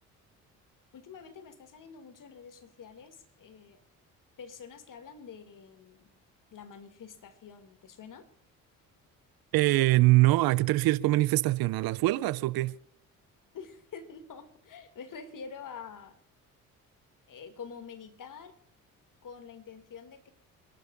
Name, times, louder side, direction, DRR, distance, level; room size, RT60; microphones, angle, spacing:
voice 1, 0.9-3.8 4.4-6.1 6.5-8.3 13.5-16.2 17.3-18.6 19.2-20.3, left 6 dB, 50° left, 2.7 m, -47 dB
voice 2, 9.5-12.7, right 18 dB, 60° right, 0.7 m, -23 dB
28.5 x 11.5 x 2.6 m
hypercardioid pair, 55°, 40 cm